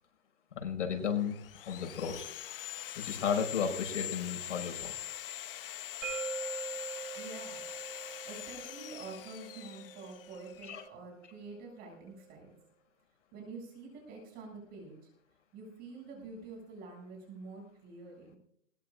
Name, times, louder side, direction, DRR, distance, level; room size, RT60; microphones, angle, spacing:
voice 1, 0.5-1.4 1.7-2.3 3.0-4.9 10.7-10.8, left 7 dB, 75° left, 2 dB, 5.7 m, -33 dB
Sawing, 1.0-10.9, left 13 dB, 45° left, 1.0 m, -43 dB
sound 1, 6.0-11.8, right 6 dB, 85° right, 7.3 m, -44 dB
voice 2, 7.1-7.7 8.0-12.5 13.3-15.1 15.5-18.4, right 3 dB, 25° right, -1 dB, 7.4 m, -47 dB
21.5 x 19.0 x 2.5 m, 0.71 s
hypercardioid pair, 165°, 38 cm